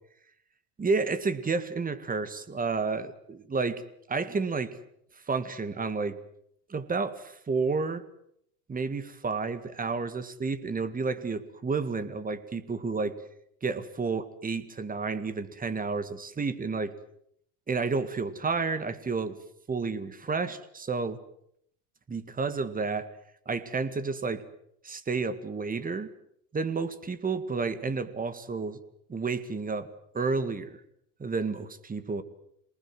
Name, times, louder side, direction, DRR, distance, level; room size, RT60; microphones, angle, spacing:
voice 1, 0.8-3.8 4.1-4.7 5.3-6.2 6.7-8.0 8.7-13.1 13.6-16.9 17.7-19.4 19.7-21.2 22.1-23.1 23.5-24.4 24.8-26.1 26.5-28.8 29.1-29.9 30.1-30.8 31.2-32.2, right 4 dB, 20° right, 12 dB, 2.0 m, -31 dB
27.5 x 20.0 x 7.8 m, 0.71 s
supercardioid pair, 120°, 47 cm